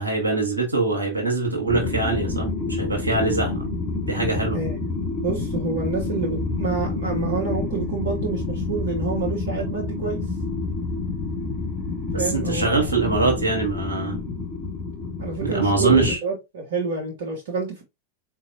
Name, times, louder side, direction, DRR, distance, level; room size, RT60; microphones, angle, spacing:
voice 1, 0.0-3.6 4.1-4.6 12.1-14.2 15.4-16.2, right 3 dB, 80° right, 1.2 m, -23 dB
sound 1, 1.7-16.1, left 3 dB, 10° left, 1.6 m, -28 dB
voice 2, 4.5-10.2 12.2-12.9 15.2-17.8, right 5 dB, 60° right, 0.9 m, -28 dB
4.0 x 2.7 x 2.5 m
figure-of-eight pair, 90°, 0 cm